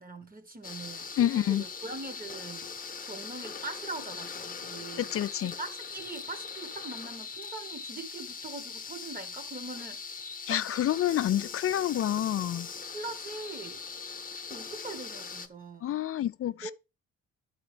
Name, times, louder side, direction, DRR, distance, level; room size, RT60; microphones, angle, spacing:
voice 1, 0.0-2.7 3.0-5.1 5.6-10.0 10.5-10.6 12.9-13.8 14.5-15.9 16.6-16.7, right 3 dB, 30° right, 1.5 m, -42 dB
sound 1, 0.6-15.5, left 5 dB, 30° left, 1.0 m, -41 dB
voice 2, 1.2-1.6 5.0-5.5 10.5-12.7 15.8-16.7, left 12 dB, 50° left, 0.4 m, -28 dB
12.0 x 4.9 x 3.3 m
cardioid pair, 90°, 30 cm